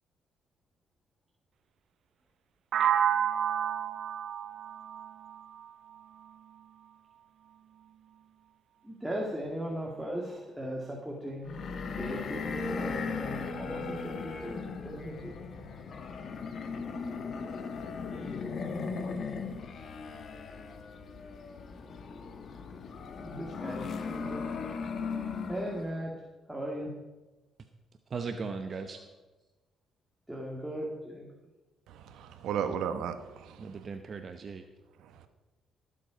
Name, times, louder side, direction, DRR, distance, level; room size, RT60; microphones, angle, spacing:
sound 1, 2.7-6.6, right 9 dB, 65° right, 0.4 m, -31 dB
voice 1, 8.8-15.4 19.8-19.9 23.2-24.5 25.5-26.1 26.5-26.9 28.9-29.0 30.3-31.3, equal, 10° right, 2.2 m, -38 dB
sound 2, 11.5-26.0, left 5 dB, 55° left, 1.3 m, -38 dB
voice 2, 28.1-29.0 32.6-32.7 33.6-34.6, right 5 dB, 45° right, 0.8 m, -38 dB
voice 3, 31.9-33.8 35.0-35.3, right 8 dB, 85° right, 1.1 m, -35 dB
16.0 x 7.7 x 5.2 m
cardioid pair, 90°, 0 cm